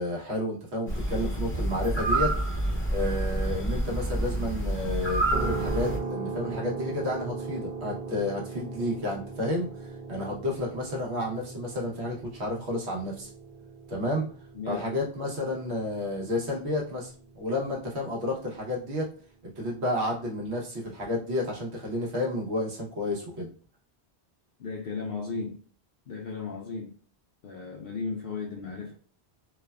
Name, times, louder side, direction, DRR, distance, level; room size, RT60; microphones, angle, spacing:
voice 1, 0.0-2.3 2.9-13.3 13.9-14.3 14.7-19.1 19.6-23.5, left 1 dB, 75° right, -3 dB, 1.2 m, -31 dB
sound 1, 0.9-6.0, right 1 dB, 15° left, 0.5 m, -28 dB
sound 2, 5.3-19.3, right 4 dB, 55° right, 0.8 m, -39 dB
voice 2, 24.6-25.6 26.1-26.9 27.4-28.9, left 4 dB, 65° left, -2 dB, 0.8 m, -35 dB
3.2 x 2.1 x 2.3 m, 0.42 s
omnidirectional pair, 1.1 m